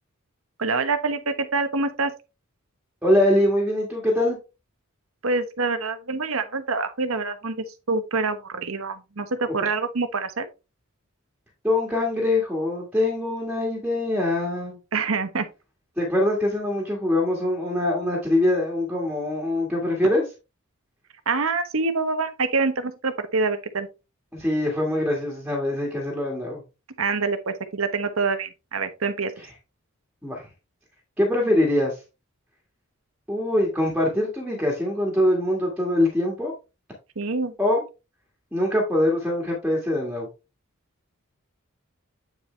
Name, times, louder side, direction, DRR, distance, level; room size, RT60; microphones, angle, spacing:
voice 1, 0.6-2.1 5.2-10.5 14.9-15.5 21.3-23.9 27.0-29.3 37.2-37.5, right 4 dB, 75° right, 1.1 m, -26 dB
voice 2, 3.0-4.4 11.6-14.8 16.0-20.2 24.3-26.6 29.4-29.5 30.2-30.4 31.2-32.0 33.3-36.5 37.6-37.8 38.5-40.3, left 1 dB, 5° right, 1.7 m, -23 dB
8.8 x 4.7 x 3.3 m
head